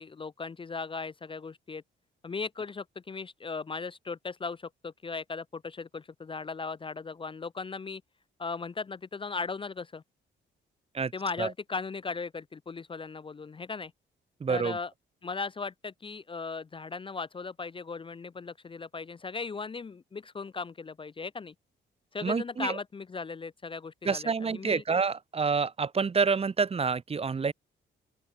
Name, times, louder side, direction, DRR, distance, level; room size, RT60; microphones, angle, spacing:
voice 1, 0.0-1.8 2.2-8.0 8.4-10.0 11.1-13.9 14.5-14.9 15.2-21.5 22.1-24.8, left 4 dB, 25° left, 0.6 m, -37 dB
voice 2, 14.4-14.8 22.2-22.8 24.0-27.5, right 5 dB, 30° right, 0.9 m, -28 dB
open air
cardioid pair, 90°, 20 cm